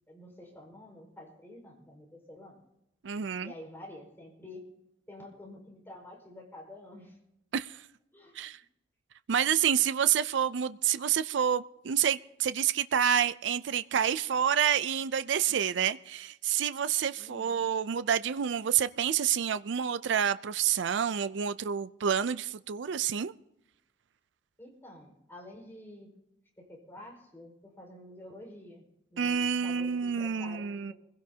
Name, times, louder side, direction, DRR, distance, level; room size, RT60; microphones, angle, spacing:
voice 1, 0.1-2.6 3.4-4.7 5.1-7.2 8.1-8.4 15.5-15.6 17.2-17.6 24.6-26.1 26.6-28.8 29.1-30.9, left 1 dB, 10° left, 4.8 m, -49 dB
voice 2, 3.0-3.5 7.5-7.8 8.4-8.6 9.3-23.3 29.2-30.9, right 8 dB, 70° right, 0.4 m, -28 dB
25.0 x 16.5 x 2.8 m
head